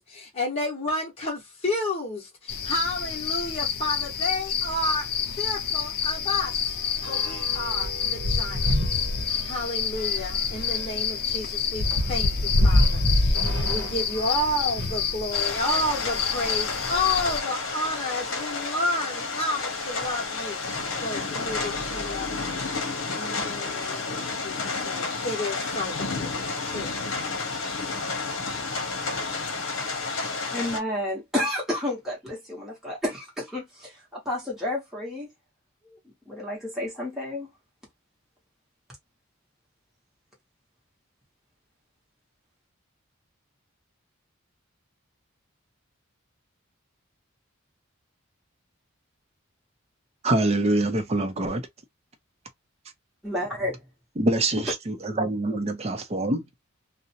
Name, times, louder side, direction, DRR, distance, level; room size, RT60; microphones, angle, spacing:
voice 1, 0.1-5.1 5.4-6.5 7.1-8.7 9.2-22.6 23.2-26.9, left 1 dB, 30° left, 0.9 m, -31 dB
sound 1, 2.5-17.4, left 7 dB, 50° left, 0.5 m, -29 dB
sound 2, 4.6-4.8 5.2-5.3 5.6-15.1 15.8-17.2 17.9-18.0 18.2-18.3 20.0-20.2 20.8-21.0 21.4-22.7, left 1 dB, 65° right, 0.8 m, -28 dB
sound 3, 15.3-30.8, left 4 dB, 65° left, 0.9 m, -31 dB
voice 2, 30.5-35.3 35.9-36.0 36.3-37.5 53.2-53.8, left 1 dB, ahead, 0.9 m, -31 dB
voice 3, 50.2-51.6 54.2-56.6, right 2 dB, 30° right, 0.5 m, -25 dB
2.5 x 2.0 x 2.6 m
head